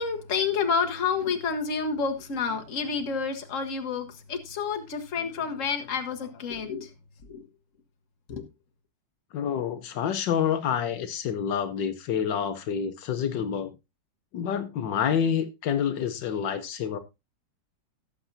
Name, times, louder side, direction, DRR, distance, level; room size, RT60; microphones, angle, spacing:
voice 1, 0.0-6.9 7.3-7.4 8.3-8.4, left 5 dB, 45° left, 1.5 m, -29 dB
voice 2, 9.3-13.7 14.3-17.0, left 8 dB, 80° left, 1.5 m, -28 dB
17.0 x 7.0 x 2.6 m
omnidirectional pair, 2.0 m